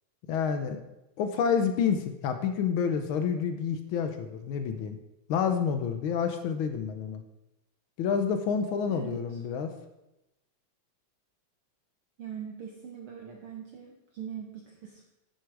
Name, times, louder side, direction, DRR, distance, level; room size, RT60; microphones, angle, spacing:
voice 1, 0.3-0.8 1.2-5.0 5.3-7.2 8.0-9.7, left 7 dB, 85° left, 7 dB, 1.1 m, -28 dB
voice 2, 8.9-9.4 12.2-15.0, right 8 dB, 60° right, 1 dB, 1.6 m, -42 dB
9.6 x 8.6 x 4.7 m, 0.92 s
omnidirectional pair, 3.3 m